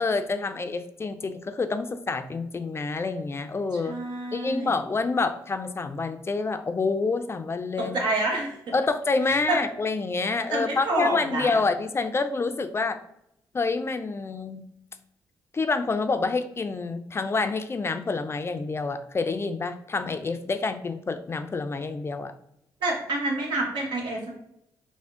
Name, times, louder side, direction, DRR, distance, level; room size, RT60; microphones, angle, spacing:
voice 1, 0.0-4.0 4.3-8.0 8.7-13.0 13.5-14.6 15.5-22.3, left 4 dB, 35° left, 9 dB, 0.3 m, -27 dB
voice 2, 3.8-4.7 7.9-8.5 9.3-9.6 10.5-11.6 22.8-24.3, right 2 dB, 75° right, 0 dB, 1.0 m, -28 dB
3.5 x 2.1 x 3.5 m, 0.76 s
cardioid pair, 60°, 8 cm